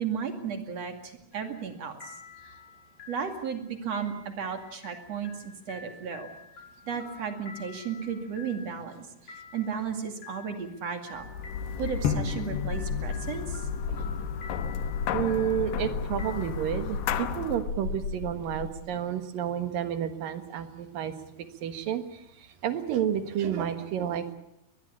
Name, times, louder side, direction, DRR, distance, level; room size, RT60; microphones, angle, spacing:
voice 1, 0.0-2.1 2.4-2.5 3.1-6.3 6.9-11.3 11.8-13.7, right 6 dB, 45° right, 6 dB, 3.0 m, -34 dB
sound 1, 1.3-16.5, left 5 dB, 40° left, 7.4 m, -49 dB
sound 2, 11.2-17.7, left 7 dB, 90° left, 3.2 m, -33 dB
sound 3, 12.4-18.7, left 4 dB, 60° left, 4.7 m, -36 dB
voice 2, 15.1-21.1 21.6-24.3, right 9 dB, 65° right, 9 dB, 3.0 m, -30 dB
23.5 x 20.5 x 8.5 m, 0.80 s
omnidirectional pair, 4.7 m